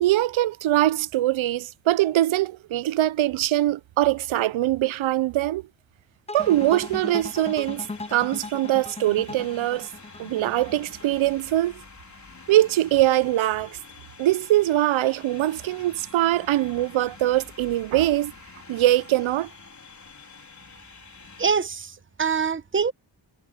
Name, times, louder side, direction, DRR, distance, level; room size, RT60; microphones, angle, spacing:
voice 1, 0.0-5.6 6.3-9.9 10.2-11.8 12.5-13.8 14.2-18.3 18.7-19.5, right 14 dB, 75° right, 0.7 m, -22 dB
sound 1, 6.3-11.4, left 3 dB, 15° left, 0.7 m, -37 dB
sound 2, 6.4-21.5, left 4 dB, 35° left, 4.8 m, -47 dB
voice 2, 21.4-22.9, right 6 dB, 25° right, 1.1 m, -24 dB
cardioid pair, 60°, 47 cm